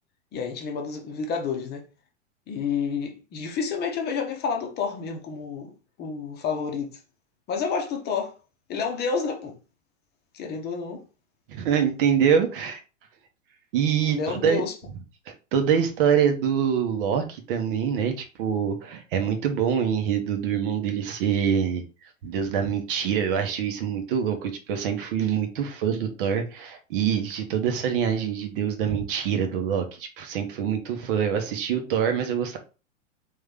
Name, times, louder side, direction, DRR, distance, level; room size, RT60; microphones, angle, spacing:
voice 1, 0.3-1.8 2.5-5.7 6.0-7.0 7.5-8.3 8.7-9.6 10.3-11.0 14.1-14.7, left 5 dB, 25° left, 0.9 m, -29 dB
voice 2, 11.5-12.8 13.7-14.6 15.5-18.1 18.4-21.8 22.2-32.6, right 8 dB, 45° right, 0.9 m, -25 dB
3.7 x 3.1 x 3.5 m
figure-of-eight pair, 95°, 38 cm